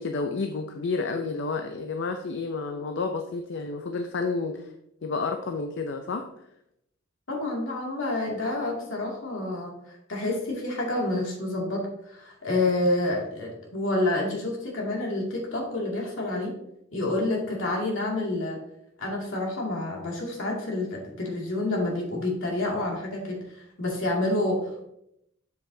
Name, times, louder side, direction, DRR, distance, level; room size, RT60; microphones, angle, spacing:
voice 1, 0.0-4.7 5.0-6.3, left 4 dB, 60° left, 5 dB, 0.5 m, -30 dB
voice 2, 7.3-16.5 16.9-18.6 19.0-24.9, left 2 dB, 75° left, -2 dB, 2.3 m, -28 dB
7.7 x 7.1 x 2.7 m, 0.78 s
head